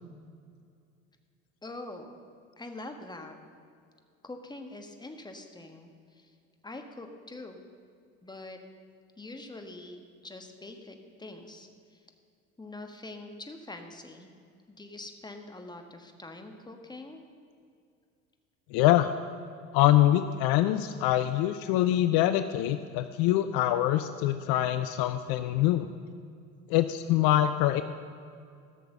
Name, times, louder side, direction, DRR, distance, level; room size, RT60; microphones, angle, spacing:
voice 1, 1.6-2.1 2.6-3.3 4.2-6.3 6.6-7.6 8.2-8.6 9.2-12.0 12.6-14.3 14.7-17.2, left 2 dB, 10° left, 5 dB, 1.4 m, -44 dB
voice 2, 18.7-19.1 19.7-25.9 26.7-27.8, left 13 dB, 60° left, 11 dB, 0.6 m, -24 dB
15.0 x 6.7 x 6.6 m, 2.3 s
hypercardioid pair, 75°, 42 cm